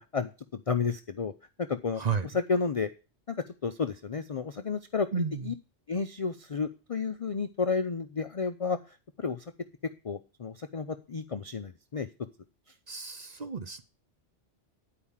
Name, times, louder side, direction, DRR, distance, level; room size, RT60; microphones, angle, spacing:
voice 1, 0.0-1.3 1.7-2.0 2.3-2.9 3.3-3.4 3.6-5.1 5.4-5.5 5.9-8.8 9.2-9.4 10.0-12.1, left 5 dB, 50° left, 8 dB, 0.4 m, -31 dB
voice 2, 1.9-2.3 5.1-5.6 12.9-13.8, right 6 dB, 40° right, 9 dB, 0.7 m, -32 dB
10.0 x 4.9 x 7.2 m, 0.33 s
omnidirectional pair, 1.2 m